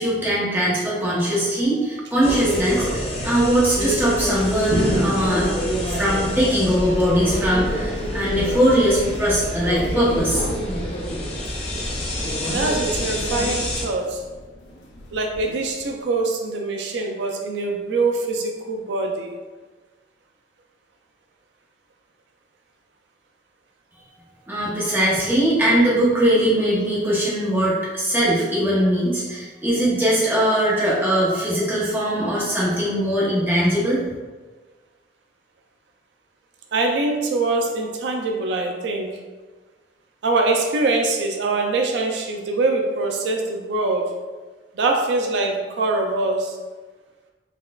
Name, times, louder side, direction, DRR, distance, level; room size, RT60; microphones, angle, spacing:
voice 1, 0.0-5.6 5.9-10.5 24.5-34.0, equal, 10° right, -8 dB, 0.8 m, -21 dB
sound 1, 2.2-13.8, equal, 35° left, 0.6 m, -26 dB
sound 2, 6.2-16.1, left 1 dB, 85° left, 0.5 m, -37 dB
voice 2, 12.5-14.2 15.1-19.3 36.7-39.1 40.2-44.1 44.8-46.6, right 3 dB, 80° right, 2 dB, 0.4 m, -23 dB
4.1 x 2.3 x 2.2 m, 1.3 s
head